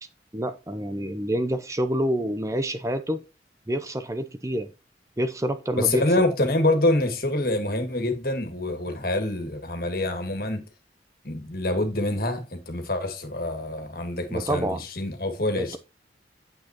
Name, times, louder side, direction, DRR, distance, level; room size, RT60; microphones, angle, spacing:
voice 1, 0.3-3.2 3.7-4.7 5.2-6.0 14.3-14.8 15.6-15.8, equal, 15° right, 0.6 m, -27 dB
voice 2, 5.8-10.6 11.2-15.8, left 2 dB, 55° left, 2.0 m, -26 dB
9.2 x 8.0 x 2.9 m
head